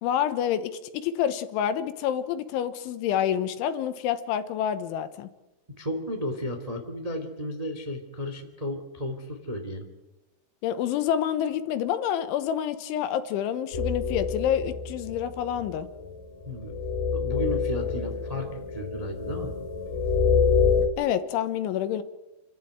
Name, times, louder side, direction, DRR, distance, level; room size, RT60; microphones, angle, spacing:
voice 1, 0.0-5.3 10.6-15.9 21.0-22.0, left 9 dB, 80° left, 10 dB, 3.5 m, -28 dB
voice 2, 5.8-9.9 16.4-16.7 17.1-19.6, left 1 dB, 85° right, 4 dB, 0.3 m, -33 dB
sound 1, 13.7-20.9, left 5 dB, 40° left, 3.1 m, -27 dB
28.5 x 12.5 x 9.3 m, 1.0 s
omnidirectional pair, 5.6 m